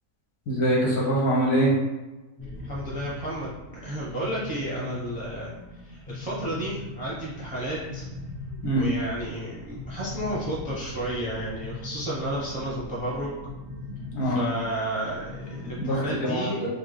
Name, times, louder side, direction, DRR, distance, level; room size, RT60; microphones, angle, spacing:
voice 1, 0.5-1.7 8.6-8.8 14.1-14.4 15.8-16.7, right 1 dB, 85° left, -5 dB, 1.6 m, -24 dB
sound 1, 2.4-16.2, left 2 dB, 50° left, 0.4 m, -40 dB
voice 2, 2.6-8.1 8.7-13.3 14.2-16.6, right 1 dB, 10° right, -7 dB, 0.5 m, -32 dB
4.3 x 2.1 x 3.3 m, 1.1 s
omnidirectional pair, 1.6 m